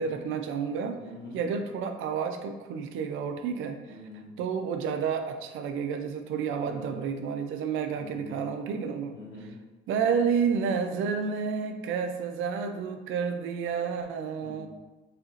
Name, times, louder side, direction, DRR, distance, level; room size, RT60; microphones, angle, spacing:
voice 1, 0.0-1.0 1.3-4.0 4.4-9.2 9.9-14.7, right 6 dB, 90° right, 6 dB, 0.4 m, -30 dB
voice 2, 0.9-1.5 3.9-4.3 6.6-7.0 7.9-8.4 9.1-9.6 14.4-14.7, left 1 dB, 70° left, -4 dB, 1.3 m, -45 dB
4.1 x 2.8 x 2.8 m, 1.1 s
cardioid pair, 90°, 20 cm